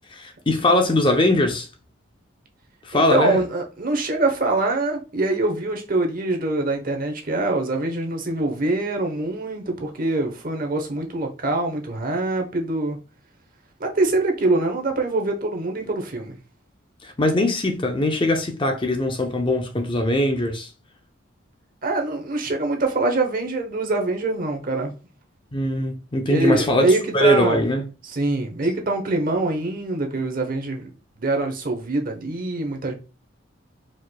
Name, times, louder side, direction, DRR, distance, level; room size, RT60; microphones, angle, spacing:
voice 1, 0.1-1.7 2.8-3.4 17.0-20.7 25.5-27.9, left 1 dB, 25° left, 0.5 m, -21 dB
voice 2, 2.9-13.0 13.8-16.4 21.8-24.9 26.3-27.6 28.0-30.9 31.2-33.0, right 2 dB, 45° right, 1.0 m, -24 dB
4.7 x 4.3 x 2.2 m
head